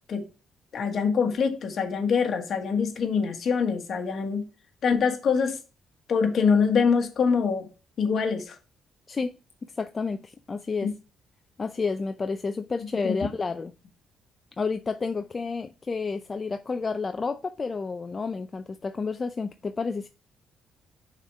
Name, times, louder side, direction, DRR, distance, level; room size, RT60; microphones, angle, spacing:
voice 1, 0.7-4.4 4.8-5.6 6.1-7.7 8.0-8.5 10.8-10.9 13.0-13.1, left 5 dB, 60° left, 1.4 m, -24 dB
voice 2, 9.6-10.9 11.6-13.7 14.6-20.1, left 4 dB, 35° left, 0.5 m, -30 dB
5.8 x 4.4 x 4.7 m
cardioid pair, 90°, 0 cm